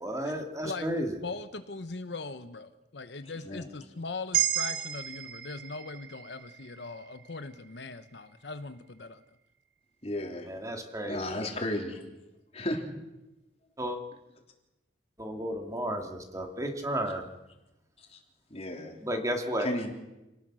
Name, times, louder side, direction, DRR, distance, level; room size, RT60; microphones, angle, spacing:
voice 1, 0.0-1.2 10.5-11.4 13.8-14.0 15.2-17.3 19.0-19.7, right 1 dB, 15° right, 4 dB, 2.4 m, -33 dB
voice 2, 0.6-9.2, left 3 dB, 65° left, 10 dB, 0.9 m, -40 dB
sound 1, 4.3-8.6, right 12 dB, 50° right, 1.8 m, -34 dB
voice 3, 10.0-10.5 11.1-12.0 12.5-12.8 18.1-18.2 18.5-19.0 19.6-19.9, left 1 dB, 35° left, 2 dB, 3.4 m, -33 dB
28.0 x 19.0 x 6.3 m, 0.98 s
head